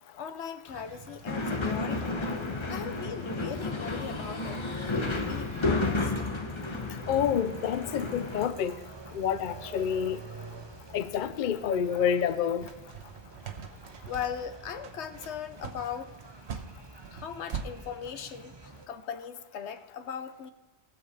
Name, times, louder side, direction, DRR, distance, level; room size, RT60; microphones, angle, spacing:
voice 1, 0.1-2.2 2.7-4.6 5.1-6.1 8.3-8.5 14.0-16.1 17.1-20.5, left 7 dB, 75° left, 10 dB, 1.0 m, -39 dB
sound 1, 0.7-18.9, right 4 dB, 30° right, 0.6 m, -49 dB
sound 2, 1.3-8.5, left 3 dB, 30° left, 0.8 m, -32 dB
voice 2, 7.1-8.8 9.1-10.2 10.9-12.7, left 8 dB, 55° left, 12 dB, 0.6 m, -28 dB
sound 3, 12.6-17.7, right 6 dB, 70° right, 1.2 m, -41 dB
18.5 x 7.0 x 4.0 m, 1.2 s
omnidirectional pair, 1.2 m